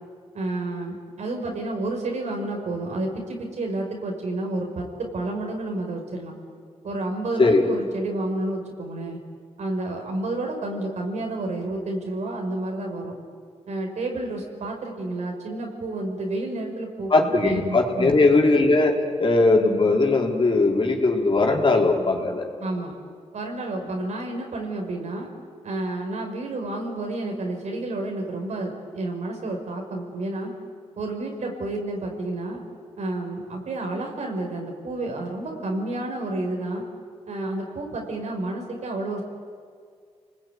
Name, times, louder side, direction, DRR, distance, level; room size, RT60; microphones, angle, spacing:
voice 1, 0.3-4.9 5.1-6.4 6.8-9.2 9.6-13.2 13.7-17.6 17.9-18.2 22.6-22.9 23.3-25.3 25.6-30.5 31.0-32.6 33.0-36.8 37.3-39.2, right 2 dB, 80° right, 1 dB, 5.7 m, -30 dB
voice 2, 17.1-22.5, left 3 dB, 45° left, 0 dB, 4.4 m, -19 dB
29.5 x 20.5 x 9.6 m, 2.1 s
cardioid pair, 70°, 12 cm